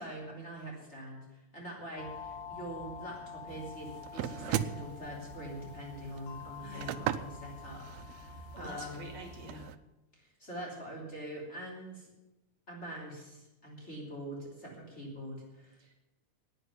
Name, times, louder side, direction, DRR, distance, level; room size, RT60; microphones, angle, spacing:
voice 1, 0.0-9.0 10.1-12.1 12.7-15.8, right 1 dB, 20° left, -2 dB, 3.6 m, -44 dB
sound 1, 2.0-9.7, left 5 dB, 80° left, 3.0 m, -47 dB
sound 2, 3.5-9.8, right 11 dB, 80° right, 1.6 m, -39 dB
voice 2, 6.6-7.0 8.5-9.7 15.8-15.9, right 2 dB, 60° right, 3 dB, 3.4 m, -47 dB
11.5 x 9.1 x 9.7 m, 0.97 s
omnidirectional pair, 3.5 m